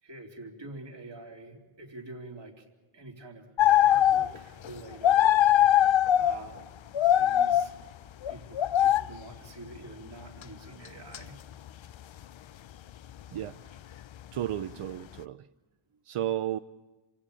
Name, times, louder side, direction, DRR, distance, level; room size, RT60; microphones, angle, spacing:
voice 1, 0.0-2.6 2.9-3.5 3.8-5.6 6.1-6.6 7.1-7.7 8.3-11.4, right 2 dB, 55° right, 1 dB, 4.0 m, -46 dB
sound 1, 3.6-4.4 4.6-4.8 5.0-6.4 6.9-7.7 8.2-9.1 10.4-10.5 11.1-11.2 11.7-11.8, left 11 dB, 65° left, 0.7 m, -21 dB
voice 2, 14.3-15.5 16.0-16.6, right 12 dB, 90° right, 12 dB, 0.7 m, -33 dB
27.5 x 17.0 x 8.5 m, 1.2 s
wide cardioid pair, 80°, 50 cm